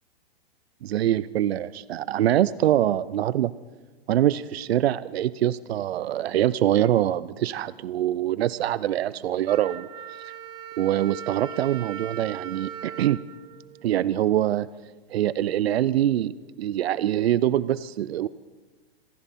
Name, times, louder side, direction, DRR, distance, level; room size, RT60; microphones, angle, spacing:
voice 1, 0.8-3.5 4.1-9.9 10.8-13.2 13.8-14.7 15.1-18.3, right 12 dB, 80° right, 18 dB, 0.5 m, -24 dB
Wind instrument woodwind instrument, 9.5-14.3, right 9 dB, 15° right, 0.4 m, -39 dB
27.0 x 11.0 x 4.2 m, 1.3 s
hypercardioid pair, 130°, 31 cm